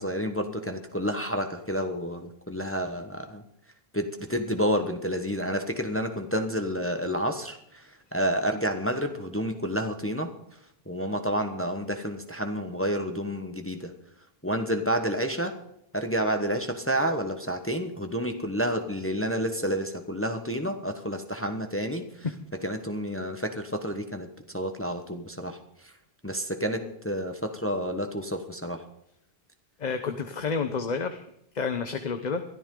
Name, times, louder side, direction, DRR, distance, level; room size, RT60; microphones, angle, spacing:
voice 1, 0.0-3.4 3.9-10.3 10.9-13.9 14.4-15.5 15.9-22.3 22.5-24.3 24.5-25.6 26.2-28.8, equal, 15° left, 6 dB, 1.1 m, -29 dB
voice 2, 29.8-31.2 31.5-32.4, left 5 dB, 45° left, 8 dB, 1.0 m, -30 dB
22.5 x 13.5 x 3.8 m, 0.77 s
omnidirectional pair, 1.1 m